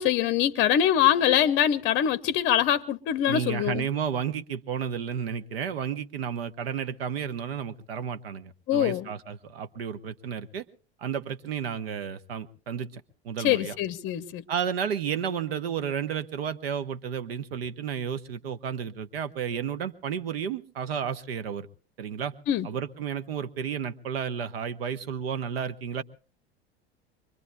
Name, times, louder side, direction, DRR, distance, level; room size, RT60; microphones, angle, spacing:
voice 1, 0.0-3.9 8.7-9.1 13.4-14.4 22.5-22.7, left 10 dB, 35° left, 0.7 m, -24 dB
voice 2, 3.3-10.7 11.0-13.8 14.5-21.7 22.0-22.3 22.6-26.0, right 7 dB, 70° right, 0.9 m, -32 dB
24.0 x 23.5 x 2.3 m
figure-of-eight pair, 75°, 32 cm